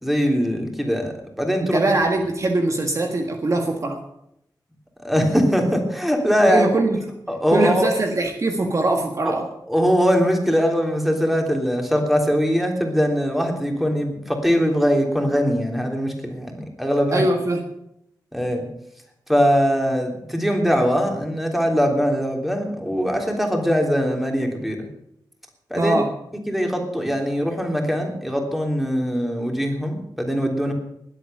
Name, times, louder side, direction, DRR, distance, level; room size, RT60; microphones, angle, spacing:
voice 1, 0.0-1.8 5.0-6.7 7.3-7.9 9.2-9.3 9.7-17.2 18.3-18.6 19.3-24.9 25.7-26.0 26.5-30.7, equal, ahead, 2 dB, 3.4 m, -21 dB
voice 2, 1.6-4.0 6.5-7.0 7.5-9.5 17.1-17.7 25.8-26.1, right 2 dB, 45° right, 4 dB, 1.6 m, -22 dB
20.0 x 8.3 x 6.9 m, 0.76 s
wide cardioid pair, 95°, 8 cm